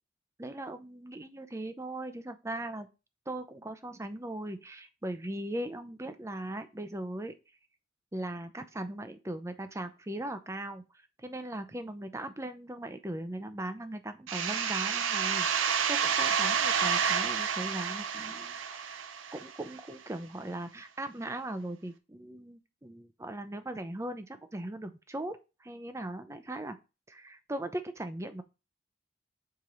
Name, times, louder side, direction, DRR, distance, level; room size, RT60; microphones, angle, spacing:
voice 1, 0.4-2.9 3.3-7.3 8.1-10.8 11.2-19.0 19.3-26.8 27.1-28.4, right 1 dB, 15° right, 9 dB, 0.6 m, -39 dB
sound 1, 14.3-19.8, right 7 dB, 90° right, 0.7 m, -29 dB
4.8 x 4.4 x 5.3 m, 0.28 s
head